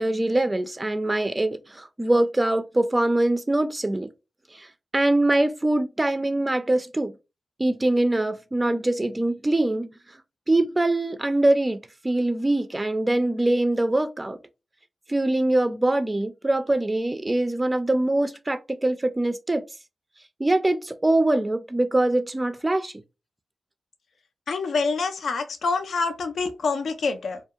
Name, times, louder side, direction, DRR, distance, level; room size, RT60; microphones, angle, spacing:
voice 1, 0.0-4.1 4.5-4.7 4.9-7.1 7.6-9.9 10.5-14.4 15.1-19.6 20.4-22.9, right 1 dB, 25° right, 0.3 m, -23 dB
voice 2, 24.5-27.4, left 4 dB, 75° left, 0.3 m, -26 dB
2.2 x 2.1 x 2.7 m
supercardioid pair, 45°, 0 cm